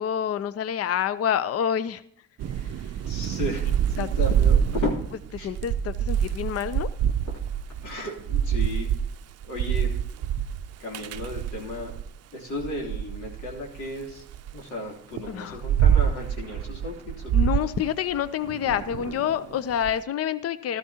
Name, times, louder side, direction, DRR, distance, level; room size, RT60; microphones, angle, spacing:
voice 1, 0.0-2.0 4.0-4.1 5.4-7.1 15.3-15.6 17.3-20.8, left 9 dB, 55° left, 15 dB, 0.6 m, -27 dB
Thunder / Rain, 2.4-12.1 12.6-14.5 15.1-19.9, right 9 dB, 60° right, 0.5 m, -26 dB
voice 2, 3.0-4.9 5.4-5.5 7.2-7.4 7.8-8.9 9.4-10.0 10.8-11.9 12.3-14.2 14.5-17.5, left 2 dB, 85° left, -1 dB, 3.2 m, -34 dB
13.5 x 13.0 x 2.9 m, 0.70 s
cardioid pair, 75°, 29 cm